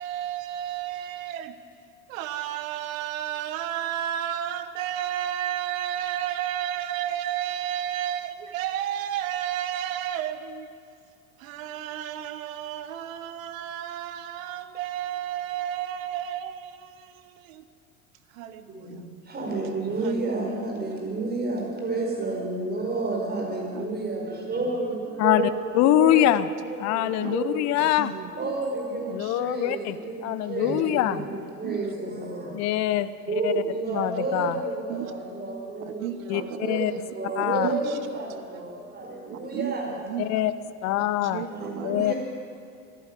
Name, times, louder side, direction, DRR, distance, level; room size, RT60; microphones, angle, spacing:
voice 1, 0.0-1.6 2.1-10.7 11.4-17.6 18.3-19.0 20.0-20.6 23.7-23.9 27.2-27.4 27.8-28.5 28.9-29.5 31.6-31.8 33.8-34.1 34.9-35.1 35.8-37.0 37.4-38.0 38.3-38.4 39.3-40.3 41.0-42.1, right 11 dB, 65° right, 1.1 m, -32 dB
voice 2, 18.7-25.6 25.9-26.3 26.7-27.6 28.4-32.5 33.3-39.8 41.5-42.2, right 3 dB, 20° right, 5.2 m, -31 dB
voice 3, 25.2-26.5 26.8-28.1 29.1-30.0 30.2-31.3 32.5-33.1 33.4-33.5 33.9-34.6 36.3-36.9 37.4-37.7 40.2-40.5 40.8-41.4 41.8-42.1, left 13 dB, 40° left, 0.7 m, -24 dB
14.0 x 11.5 x 8.8 m
figure-of-eight pair, 80°, 44 cm